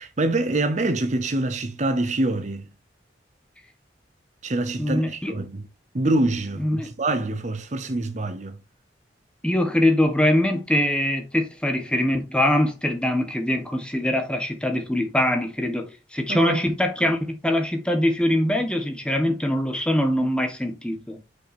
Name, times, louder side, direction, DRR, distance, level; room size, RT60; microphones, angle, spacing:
voice 1, 0.0-2.7 4.4-5.6 5.9-8.6 16.3-16.6, right 2 dB, 40° right, 0.7 m, -25 dB
voice 2, 4.8-5.3 6.6-6.9 9.4-21.2, left 1 dB, 5° left, 1.2 m, -23 dB
6.2 x 5.4 x 4.2 m
head